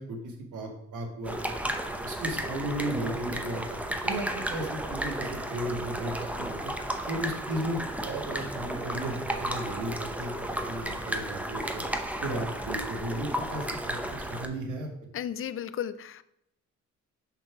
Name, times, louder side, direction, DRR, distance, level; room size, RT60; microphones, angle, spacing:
voice 1, 0.0-1.5 2.0-6.7 7.1-11.8 12.2-14.9, right 1 dB, 80° right, 2 dB, 1.7 m, -35 dB
sound 1, 1.2-14.5, right 1 dB, 5° right, 0.8 m, -33 dB
voice 2, 15.1-16.2, left 9 dB, 45° left, 16 dB, 0.5 m, -34 dB
6.6 x 3.7 x 5.9 m, 0.79 s
cardioid pair, 90°, 30 cm